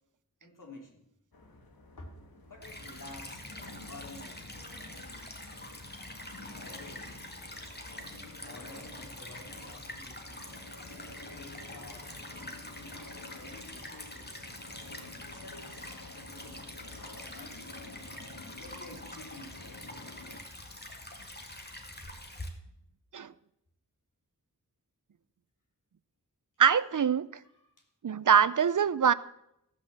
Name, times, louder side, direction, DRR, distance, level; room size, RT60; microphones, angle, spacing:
voice 1, 0.4-1.1 2.0-2.2 2.4-3.5 3.9-4.7 6.5-7.3 7.9-10.4 11.3-12.7 13.3-14.3 15.2-15.9 16.2-16.7 17.3-17.7 18.5-19.6 27.4-27.9, left 2 dB, 60° left, 3.3 m, -51 dB
sound 1, 1.3-20.4, left 2 dB, 85° left, 1.8 m, -50 dB
Stream / Trickle dribble, 2.6-22.5, left 1 dB, 30° left, 2.1 m, -45 dB
voice 2, 26.6-27.3 28.0-29.1, right 7 dB, 60° right, 0.6 m, -23 dB
16.0 x 6.3 x 7.5 m
wide cardioid pair, 55°, 35 cm